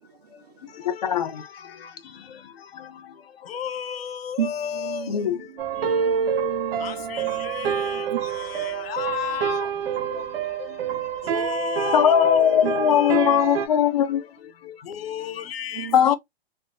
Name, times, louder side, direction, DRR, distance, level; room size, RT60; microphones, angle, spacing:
voice 1, 0.8-1.4 5.1-5.4 11.9-14.2 15.9-16.1, left 9 dB, 40° left, 0.4 m, -20 dB
voice 2, 3.5-5.0 6.8-7.2 7.5-8.0 8.9-9.6 11.3-13.2 15.0-16.1, left 8 dB, 70° left, 0.7 m, -31 dB
voice 3, 4.4-8.2 12.6-12.7 15.7-16.0, right 11 dB, 40° right, 0.4 m, -34 dB
sound 1, 5.6-13.7, right 8 dB, 70° right, 0.7 m, -27 dB
3.4 x 2.2 x 2.5 m
hypercardioid pair, 165°, 31 cm